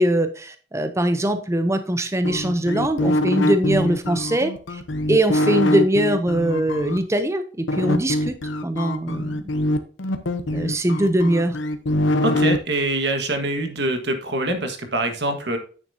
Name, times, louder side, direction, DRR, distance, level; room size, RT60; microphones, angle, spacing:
voice 1, 0.0-4.8 5.1-8.4 8.6-9.4 10.5-11.6, right 1 dB, 15° right, 9 dB, 0.7 m, -22 dB
sound 1, 2.2-7.0 7.7-12.6, left 1 dB, 90° left, 0.9 m, -23 dB
voice 2, 12.2-15.6, right 1 dB, 65° right, 6 dB, 1.6 m, -24 dB
9.2 x 7.0 x 2.8 m, 0.40 s
head